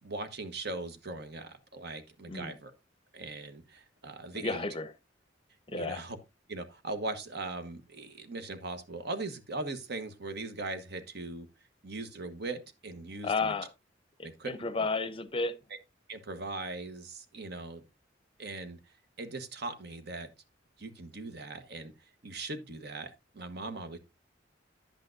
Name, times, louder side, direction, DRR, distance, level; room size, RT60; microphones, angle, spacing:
voice 1, 0.0-2.7 3.1-4.6 5.7-6.2 6.5-11.5 11.8-13.5 14.2-14.5 15.7-15.8 16.1-17.8 18.4-18.8 19.2-20.3 20.8-21.9 22.2-24.0, right 2 dB, 60° right, 1.2 m, -39 dB
voice 2, 4.4-4.9 5.7-6.0 13.2-13.7 14.4-15.6, left 3 dB, 30° left, 0.6 m, -32 dB
10.5 x 8.4 x 2.6 m
head